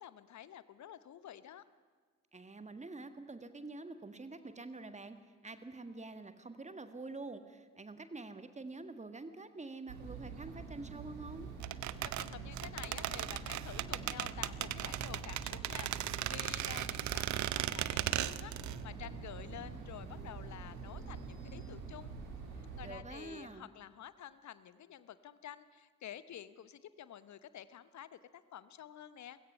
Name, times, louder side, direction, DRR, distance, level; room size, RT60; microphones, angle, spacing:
voice 1, 0.0-1.6 12.0-22.1 22.5-29.4, left 10 dB, 40° left, 15 dB, 0.9 m, -50 dB
voice 2, 2.3-5.2 5.4-11.5 22.8-23.7, right 3 dB, 15° right, 9 dB, 1.6 m, -47 dB
sound 1, 9.9-23.0, right 5 dB, 70° right, 2.6 m, -45 dB
sound 2, 11.6-18.8 19.0-19.1, right 14 dB, 45° right, 0.6 m, -37 dB
30.0 x 16.5 x 5.6 m, 1.5 s
figure-of-eight pair, 40°, 42 cm